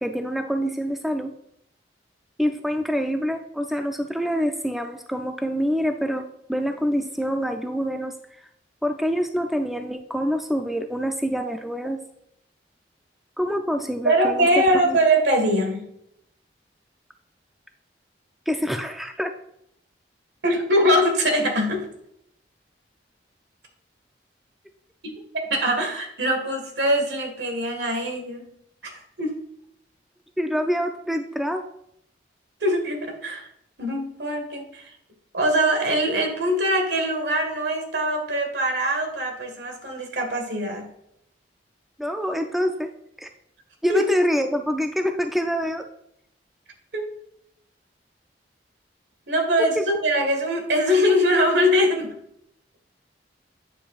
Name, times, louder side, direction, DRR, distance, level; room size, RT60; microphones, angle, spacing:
voice 1, 0.0-1.3 2.4-8.4 8.8-12.0 13.4-15.0 18.5-19.3 30.4-31.7 42.0-42.9 43.2-43.3 43.8-45.9 49.6-50.0, equal, ahead, 5 dB, 0.3 m, -26 dB
voice 2, 14.0-15.9 20.4-21.9 25.0-28.5 28.8-28.9 29.2-29.4 32.6-33.5 33.8-34.9 35.3-40.9 43.9-44.0 46.9-47.0 49.3-52.1, equal, 70° right, 4 dB, 1.7 m, -22 dB
8.8 x 7.3 x 2.4 m, 0.74 s
head